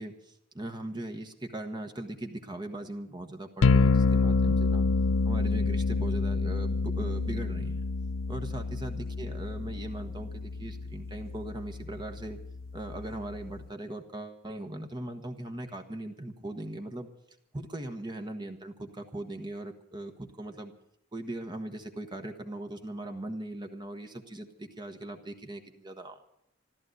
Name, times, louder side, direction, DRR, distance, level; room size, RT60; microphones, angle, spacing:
voice 1, 0.0-4.8 5.2-7.9 8.3-12.4 12.7-17.1 17.5-20.7 21.1-26.2, right 1 dB, 20° right, 5 dB, 1.2 m, -39 dB
sound 1, 3.6-13.7, left 4 dB, 75° left, 0.5 m, -28 dB
14.0 x 12.5 x 7.8 m, 0.74 s
head